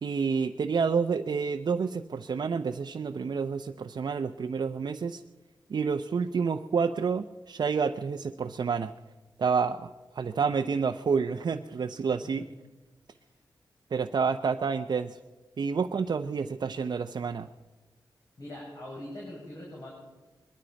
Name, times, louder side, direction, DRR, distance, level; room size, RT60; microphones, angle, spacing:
voice 1, 0.0-5.2 5.7-8.9 9.4-12.5 13.9-15.2 15.6-17.5, right 5 dB, 65° right, 6 dB, 0.6 m, -29 dB
voice 2, 18.4-19.9, left 1 dB, 55° left, -4 dB, 6.0 m, -42 dB
21.5 x 12.5 x 5.2 m, 1.2 s
cardioid pair, 70°, 8 cm